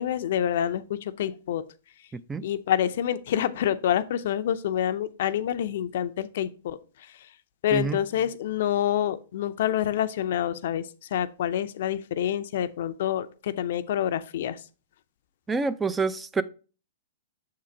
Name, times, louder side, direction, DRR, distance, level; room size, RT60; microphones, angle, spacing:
voice 1, 0.0-1.6 2.4-6.8 7.6-10.8 11.1-14.6, left 10 dB, 65° left, 0.5 m, -27 dB
voice 2, 2.1-2.4 7.7-8.0 15.5-16.4, right 4 dB, 10° right, 0.3 m, -27 dB
6.6 x 3.8 x 4.4 m
hypercardioid pair, 130°, 0 cm